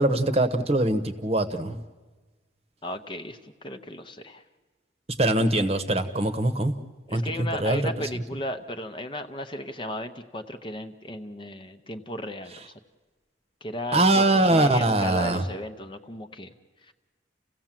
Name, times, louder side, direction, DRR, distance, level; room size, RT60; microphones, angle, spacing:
voice 1, 0.0-1.8 5.2-6.7 7.1-7.8 13.9-15.4, right 1 dB, 35° right, 9 dB, 1.1 m, -22 dB
voice 2, 2.8-4.4 7.1-12.5 13.6-16.5 16.9-17.0, equal, 25° left, 7 dB, 0.8 m, -35 dB
29.5 x 16.0 x 7.5 m, 1.3 s
head